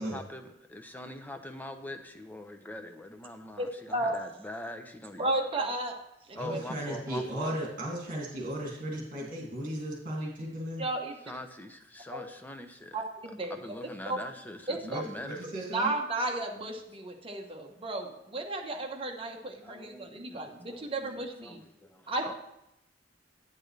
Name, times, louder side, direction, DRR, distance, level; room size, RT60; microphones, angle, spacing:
voice 1, 0.0-5.3 6.3-7.6 9.1-9.2 11.3-13.0 13.5-15.5 19.6-22.3, left 1 dB, 10° left, 6 dB, 0.7 m, -43 dB
voice 2, 3.6-4.1 5.2-6.0 6.3-6.6 10.8-11.1 12.1-12.2 12.9-13.6 14.0-14.2 14.7-15.0 15.7-21.6 22.1-22.3, right 2 dB, 30° right, 1 dB, 1.1 m, -33 dB
voice 3, 6.4-10.8 14.8-15.9, right 1 dB, 50° right, -2 dB, 2.4 m, -36 dB
9.0 x 8.6 x 3.3 m, 0.83 s
head